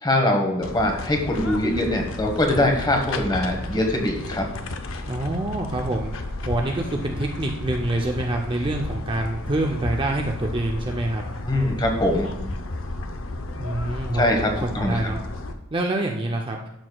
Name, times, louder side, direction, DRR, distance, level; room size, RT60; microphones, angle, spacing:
voice 1, 0.0-4.4 11.4-12.3 14.1-15.0, left 1 dB, 20° left, 2 dB, 1.2 m, -22 dB
sound 1, 0.6-15.5, left 2 dB, 65° left, 0.7 m, -33 dB
voice 2, 5.1-6.1 6.5-11.2 13.6-14.3 14.6-15.2 15.7-16.6, right 1 dB, 25° right, 2 dB, 0.5 m, -26 dB
12.0 x 6.2 x 2.3 m, 0.86 s
head